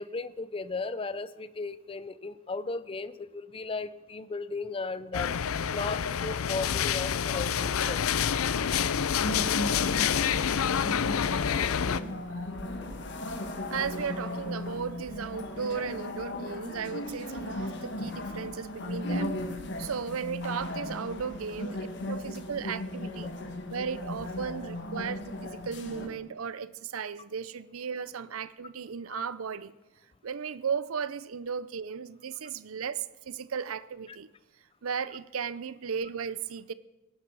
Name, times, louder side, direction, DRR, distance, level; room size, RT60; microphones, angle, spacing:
voice 1, 0.0-5.4 5.7-8.0 19.1-19.2 29.1-29.2, left 3 dB, 25° left, 0.4 m, -36 dB
sound 1, 5.1-12.0, left 7 dB, 85° left, 0.5 m, -27 dB
sound 2, 9.0-26.1, left 1 dB, 55° left, 1.4 m, -36 dB
voice 2, 11.8-12.3 13.7-19.3 19.8-23.3 23.7-29.7 30.2-34.3 34.8-36.7, right 6 dB, 80° right, 0.6 m, -35 dB
19.0 x 11.0 x 4.8 m
head